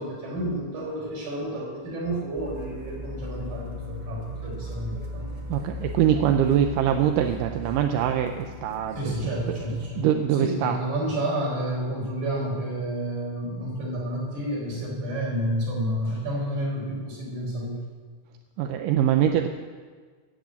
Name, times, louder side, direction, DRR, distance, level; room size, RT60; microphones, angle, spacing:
voice 1, 0.0-5.2 8.0-8.1 9.0-17.8, right 1 dB, 65° right, -3 dB, 5.7 m, -30 dB
sound 1, 2.3-9.9, left 2 dB, 35° right, 0.7 m, -37 dB
voice 2, 5.5-9.1 10.0-10.8 18.6-19.5, right 10 dB, 90° right, 5 dB, 2.3 m, -23 dB
17.0 x 6.3 x 8.4 m, 1.6 s
omnidirectional pair, 3.7 m